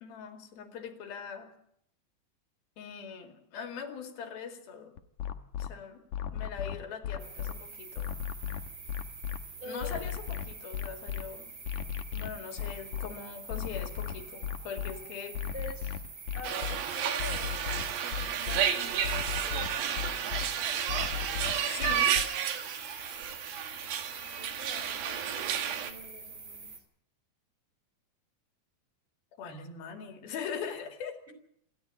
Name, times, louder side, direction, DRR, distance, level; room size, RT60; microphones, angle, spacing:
voice 1, 0.0-1.5 2.8-4.9 5.6-6.0 6.3-8.1 9.6-11.6 12.1-15.4 21.5-22.2 29.4-31.2, left 6 dB, 80° left, 5 dB, 4.2 m, -41 dB
sound 1, 5.0-5.7 6.1-7.5 8.0-9.4 9.8-11.2 11.6-13.1 13.5-14.9 15.3-16.8 17.2-18.6 19.0-20.5 20.9-22.2, left 10 dB, 65° left, 2.2 m, -35 dB
sound 2, 7.2-26.8, right 4 dB, 35° right, 3.2 m, -47 dB
voice 2, 9.6-10.0 15.5-16.0 16.3-17.7 18.4-19.9 24.0-26.7, left 1 dB, 15° right, 3 dB, 3.4 m, -45 dB
sound 3, 16.4-25.9, right 9 dB, 80° right, 3.5 m, -31 dB
27.5 x 12.5 x 8.5 m, 0.73 s
omnidirectional pair, 4.2 m